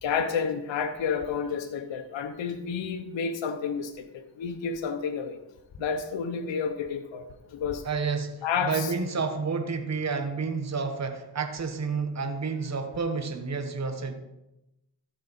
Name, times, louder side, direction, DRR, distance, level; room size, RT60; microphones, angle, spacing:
voice 1, 0.0-5.4 5.8-7.3 7.5-7.8 8.4-8.9, left 6 dB, 70° left, 6 dB, 0.9 m, -30 dB
voice 2, 7.8-14.1, right 5 dB, 35° right, 7 dB, 1.2 m, -30 dB
15.0 x 5.1 x 4.1 m, 0.92 s
cardioid pair, 55°, 46 cm